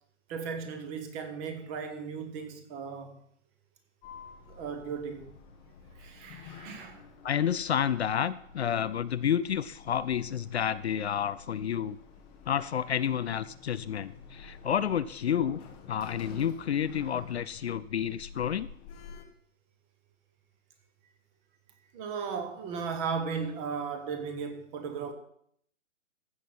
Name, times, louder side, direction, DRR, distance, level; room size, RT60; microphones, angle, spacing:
voice 1, 0.3-3.2 4.5-5.3 6.0-7.0 21.9-25.1, right 5 dB, 20° right, 1.2 m, -36 dB
Sliding door, 4.0-19.2, left 5 dB, 15° left, 0.8 m, -50 dB
voice 2, 7.2-12.0 12.5-15.6 15.9-18.7, left 9 dB, 60° left, 0.5 m, -30 dB
15.0 x 6.3 x 5.5 m
hypercardioid pair, 145°, 38 cm